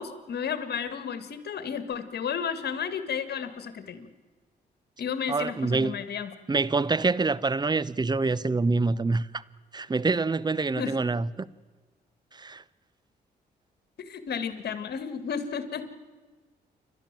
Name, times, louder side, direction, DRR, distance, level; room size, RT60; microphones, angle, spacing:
voice 1, 0.0-4.1 5.0-6.3 10.7-10.9 14.0-15.9, left 7 dB, 65° left, 1.9 m, -32 dB
voice 2, 5.3-6.0 6.5-9.4 9.7-11.5 12.3-12.6, right 3 dB, 25° right, 0.7 m, -26 dB
29.0 x 12.5 x 7.5 m
supercardioid pair, 65°, 18 cm